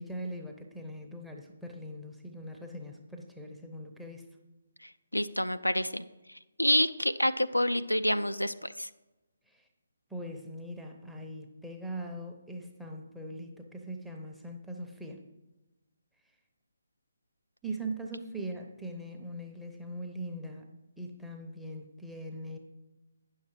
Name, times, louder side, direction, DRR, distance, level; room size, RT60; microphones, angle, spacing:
voice 1, 0.0-4.3 9.5-9.6 10.1-15.2 17.6-20.7 21.0-22.6, right 1 dB, ahead, 0 dB, 0.7 m, -41 dB
voice 2, 4.8-6.1 6.6-8.9, left 1 dB, 85° left, 11 dB, 0.4 m, -28 dB
9.3 x 6.4 x 4.6 m, 1.1 s
figure-of-eight pair, 145°, 0 cm